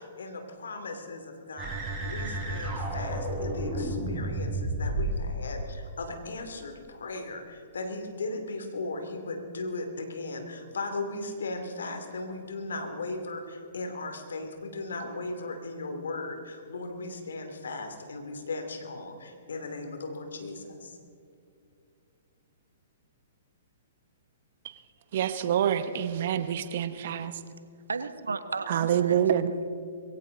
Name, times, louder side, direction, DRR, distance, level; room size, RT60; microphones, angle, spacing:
voice 1, 0.0-21.0, left 2 dB, 75° left, 6 dB, 2.6 m, -37 dB
sound 1, 1.6-5.2, right 1 dB, 20° right, 5.3 m, -31 dB
voice 2, 25.1-27.3 28.7-29.5, right 9 dB, 55° right, 11 dB, 1.1 m, -26 dB
voice 3, 27.9-29.7, right 4 dB, 80° right, 12 dB, 1.0 m, -35 dB
22.0 x 16.5 x 3.9 m, 2.5 s
figure-of-eight pair, 120°, 0 cm